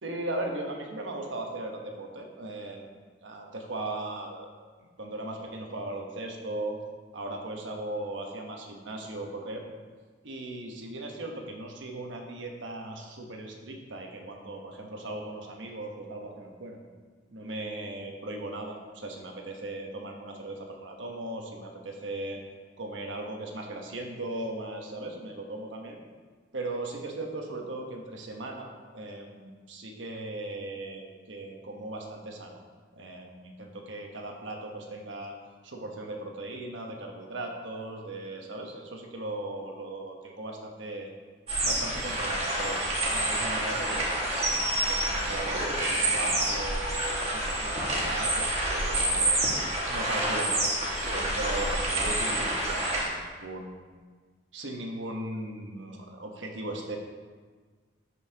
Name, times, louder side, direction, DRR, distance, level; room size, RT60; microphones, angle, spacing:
voice 1, 0.0-2.9 3.2-4.5 5.0-6.8 7.1-9.6 10.2-16.8 17.3-22.4 22.8-26.0 26.5-32.6 32.9-35.3 35.6-41.1 41.6-42.8 43.1-49.4 49.9-53.8 54.5-57.0, right 2 dB, 85° right, 2 dB, 1.1 m, -38 dB
sound 1, 41.5-53.1, right 1 dB, 35° right, 1.7 m, -28 dB
12.0 x 5.5 x 2.9 m, 1.5 s
head